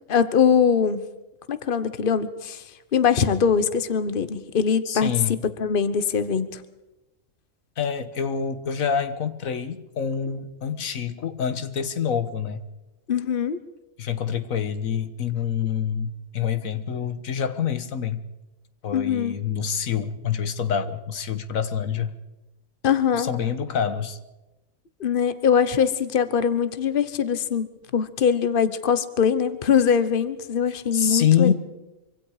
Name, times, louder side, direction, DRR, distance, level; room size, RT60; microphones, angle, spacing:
voice 1, 0.1-1.0 1.5-2.6 2.9-6.6 13.1-13.6 18.9-19.3 22.8-23.3 25.0-27.7 27.9-31.5, left 7 dB, 45° left, 12 dB, 1.2 m, -22 dB
voice 2, 4.9-5.4 7.8-12.6 14.0-18.2 18.8-22.1 23.2-24.2 30.9-31.5, left 8 dB, 85° left, 11 dB, 1.6 m, -26 dB
25.0 x 25.0 x 5.0 m, 1.0 s
omnidirectional pair, 1.4 m